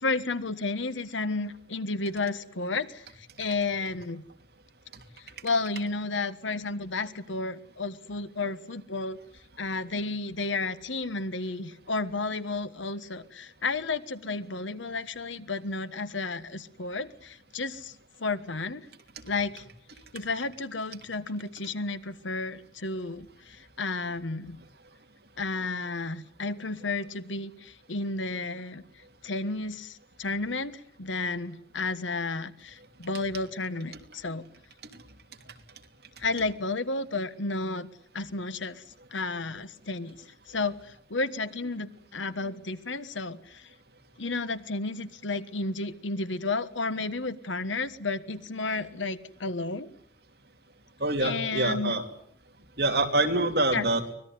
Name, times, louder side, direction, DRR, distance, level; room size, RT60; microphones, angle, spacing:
voice 1, 0.0-4.2 5.2-9.2 9.6-17.9 18.2-18.9 19.3-19.6 20.1-24.6 25.4-28.8 29.2-34.4 36.2-37.9 38.1-38.8 39.1-40.2 40.5-43.7 44.2-49.9 51.2-52.0 53.7-53.8, left 3 dB, 85° left, 13 dB, 1.4 m, -32 dB
voice 2, 51.0-52.0 52.8-54.1, right 2 dB, 55° right, 5 dB, 3.0 m, -25 dB
24.5 x 19.5 x 9.5 m, 0.68 s
head